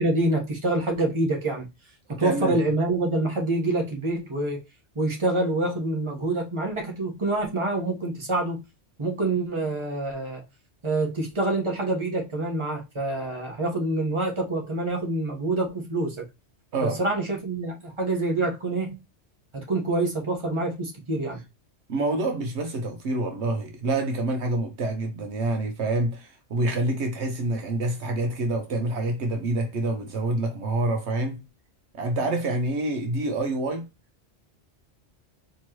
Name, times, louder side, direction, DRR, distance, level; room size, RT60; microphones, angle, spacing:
voice 1, 0.0-1.7 2.1-4.6 4.9-8.6 9.0-10.4 10.8-16.3 16.8-18.9 19.5-21.4, right 2 dB, 25° right, 1.3 m, -26 dB
voice 2, 2.1-2.6 16.7-17.0 21.9-31.4 31.9-33.9, right 2 dB, 70° right, 1.1 m, -27 dB
4.5 x 3.1 x 2.9 m
omnidirectional pair, 1.2 m